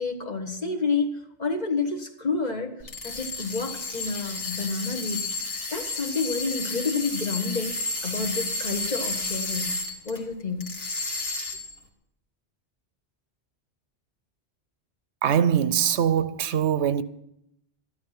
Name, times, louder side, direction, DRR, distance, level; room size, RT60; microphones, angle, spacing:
voice 1, 0.0-2.7 3.0-9.7 10.0-10.7, left 4 dB, 40° left, 1.4 m, -29 dB
sound 1, 2.8-10.2 10.6-11.8, left 3 dB, 60° left, 2.3 m, -32 dB
voice 2, 15.2-17.0, right 8 dB, 75° right, 0.9 m, -22 dB
13.0 x 11.5 x 5.8 m
omnidirectional pair, 1.2 m